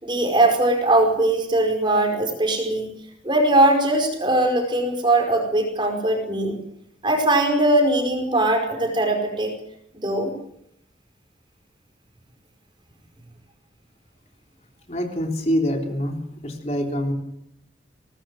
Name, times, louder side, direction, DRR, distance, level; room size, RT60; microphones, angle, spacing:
voice 1, 0.0-2.9 3.2-6.5 7.0-9.5 9.9-10.3, right 1 dB, 25° right, 4 dB, 5.1 m, -20 dB
voice 2, 14.9-16.1 16.4-17.1, equal, 40° left, 2 dB, 3.6 m, -25 dB
23.0 x 19.0 x 7.8 m, 0.76 s
head